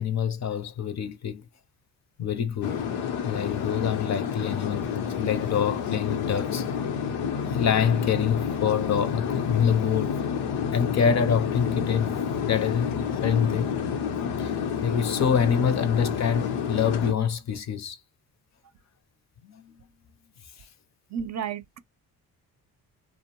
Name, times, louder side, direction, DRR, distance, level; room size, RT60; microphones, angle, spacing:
voice 1, 0.0-1.4 2.2-2.8 3.2-6.7 7.3-10.1 10.7-13.8 14.4-18.0 19.4-19.7, left 7 dB, 45° left, 0.6 m, -26 dB
sound 1, 2.6-17.1, left 7 dB, 85° left, 0.7 m, -29 dB
voice 2, 21.1-21.8, right 7 dB, 45° right, 0.5 m, -32 dB
2.5 x 2.0 x 2.9 m
cardioid pair, 95°, 38 cm